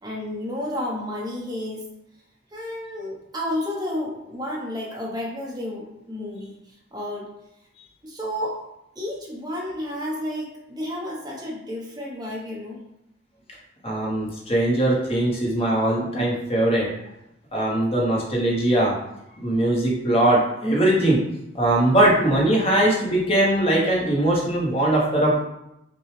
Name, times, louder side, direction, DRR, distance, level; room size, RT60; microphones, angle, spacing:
voice 1, 0.0-1.9 2.5-7.3 8.0-8.6 8.9-12.8, left 1 dB, 20° right, -3 dB, 0.9 m, -31 dB
voice 2, 13.8-16.9 17.5-18.9 19.4-21.2 21.5-25.4, right 1 dB, 30° left, -3 dB, 1.0 m, -20 dB
6.0 x 2.3 x 3.2 m, 0.84 s
head